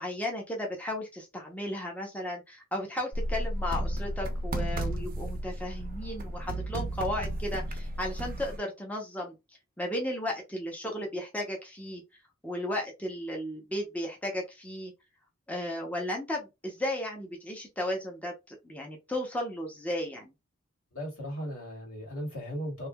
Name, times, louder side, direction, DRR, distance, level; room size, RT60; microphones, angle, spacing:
voice 1, 0.0-9.4 9.8-12.0 12.4-14.9 15.5-20.3, left 1 dB, 5° left, 0.6 m, -35 dB
sound 1, 3.1-8.6, right 1 dB, 40° right, 0.6 m, -33 dB
voice 2, 20.9-22.9, equal, 85° left, 1.9 m, -37 dB
3.1 x 2.6 x 2.2 m
head